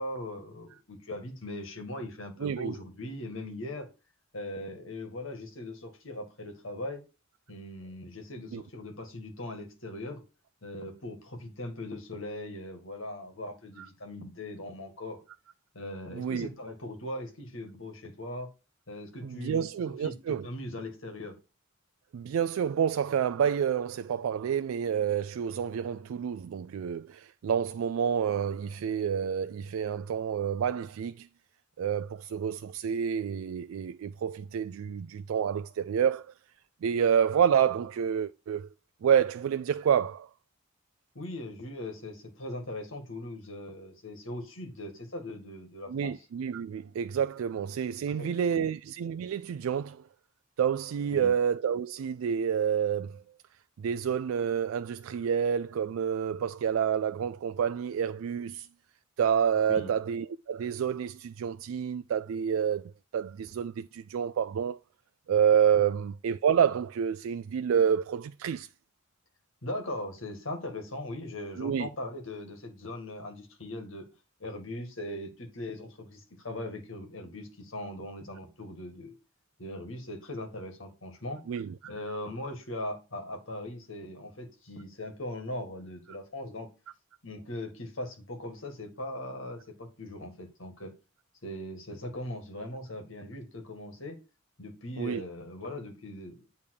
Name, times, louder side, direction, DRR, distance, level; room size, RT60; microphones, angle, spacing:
voice 1, 0.0-3.9 4.3-7.0 7.5-10.2 10.6-15.2 15.7-18.5 18.9-21.4 41.2-46.1 48.1-48.7 51.1-51.3 59.7-59.9 69.6-74.1 74.4-79.2 79.6-81.4 81.8-86.7 87.2-90.9 91.4-94.2 94.6-96.4, left 1 dB, 70° left, 2.0 m, -40 dB
voice 2, 2.4-2.7 8.5-8.6 13.8-13.9 16.1-16.5 19.2-20.4 22.1-31.3 31.8-36.3 36.8-38.7 39.0-40.3 45.9-50.0 50.6-53.2 53.8-58.7 59.2-62.8 63.1-64.8 65.3-68.7 71.6-71.9 81.5-81.7 95.0-95.2, right 8 dB, 90° right, 0.3 m, -28 dB
8.6 x 3.6 x 6.5 m
head